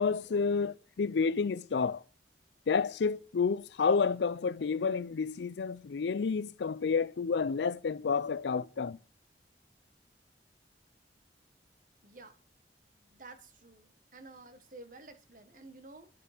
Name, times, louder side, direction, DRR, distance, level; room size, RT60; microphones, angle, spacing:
voice 1, 0.0-2.0 2.7-9.0, left 5 dB, 75° left, 0.4 m, -30 dB
voice 2, 12.0-12.4 13.0-16.1, right 2 dB, 45° right, 1.3 m, -52 dB
11.5 x 6.8 x 5.0 m
head